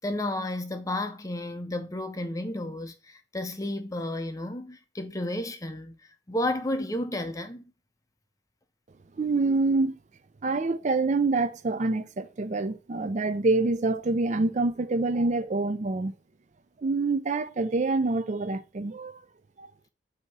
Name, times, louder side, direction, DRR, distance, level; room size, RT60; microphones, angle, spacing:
voice 1, 0.0-6.0 6.3-7.6, left 1 dB, 15° left, 0.5 m, -32 dB
voice 2, 9.2-10.0 10.4-16.2 16.8-19.2 19.6-19.7, right 3 dB, 35° right, 0.4 m, -26 dB
8.2 x 2.8 x 4.7 m
head